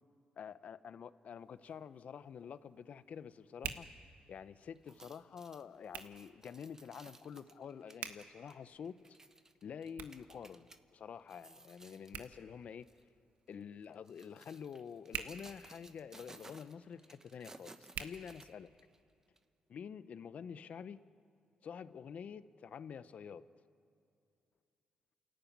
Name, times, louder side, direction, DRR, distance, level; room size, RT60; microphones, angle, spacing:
voice 1, 0.4-3.9 4.3-9.2 9.6-12.9 13.5-18.7 19.7-21.0 21.6-23.5, left 7 dB, 60° left, 0.8 m, -48 dB
Hands, 1.4-19.0, right 8 dB, 85° right, 1.3 m, -52 dB
sound 1, 4.8-10.8 11.2-12.4 12.8-13.0 13.8-19.0 19.4-19.5, right 2 dB, 20° right, 1.0 m, -58 dB
29.0 x 14.5 x 9.4 m
cardioid pair, 105°, 3 cm